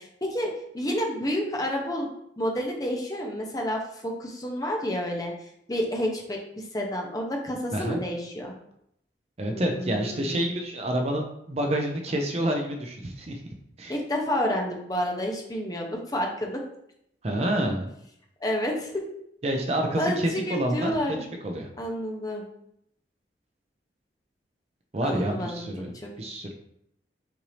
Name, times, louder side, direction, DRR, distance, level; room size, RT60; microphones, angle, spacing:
voice 1, 0.0-2.1 2.4-5.3 5.7-8.5 9.5-10.5 13.9-16.6 18.4-18.9 20.0-21.2 21.8-22.4 25.0-26.1, equal, 20° left, 0 dB, 0.7 m, -30 dB
voice 2, 9.4-13.4 13.8-14.0 17.2-17.9 19.4-20.9 21.4-21.7 24.9-25.9 26.2-26.5, right 1 dB, 35° right, 2 dB, 0.5 m, -28 dB
5.8 x 2.7 x 3.2 m, 0.74 s
head